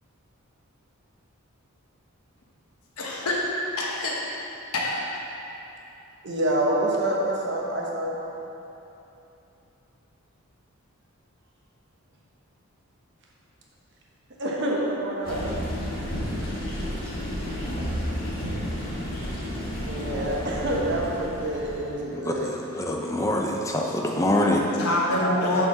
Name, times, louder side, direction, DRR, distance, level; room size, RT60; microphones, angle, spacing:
voice 1, 3.0-3.4 3.8-4.2 4.7-5.0 24.8-25.7, left 1 dB, 90° left, -3 dB, 1.0 m, -25 dB
voice 2, 6.2-8.2 14.4-15.7 19.9-22.5 25.2-25.7, right 1 dB, 55° right, -3 dB, 1.1 m, -27 dB
sound 1, 15.2-22.0, equal, 45° left, 1.4 m, -31 dB
voice 3, 22.1-24.7, left 1 dB, 15° left, 0 dB, 0.5 m, -25 dB
6.5 x 4.6 x 6.0 m, 3.0 s
head